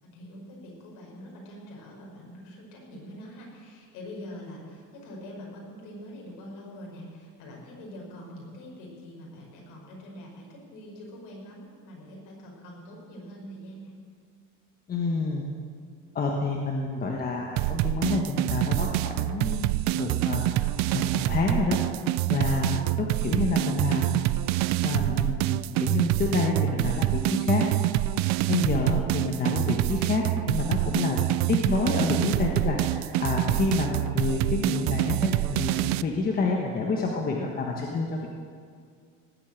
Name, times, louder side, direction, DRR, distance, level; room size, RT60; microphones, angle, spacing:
voice 1, 0.0-13.9, equal, 65° left, -2 dB, 5.5 m, -44 dB
voice 2, 14.9-15.5 16.1-20.7 20.9-21.8 22.3-24.2 24.8-27.7 28.5-38.3, left 3 dB, 25° left, 0 dB, 1.3 m, -28 dB
sound 1, 17.6-36.0, right 17 dB, 55° right, 0.5 m, -26 dB
18.5 x 8.5 x 9.0 m, 2.2 s
cardioid pair, 160°, 34 cm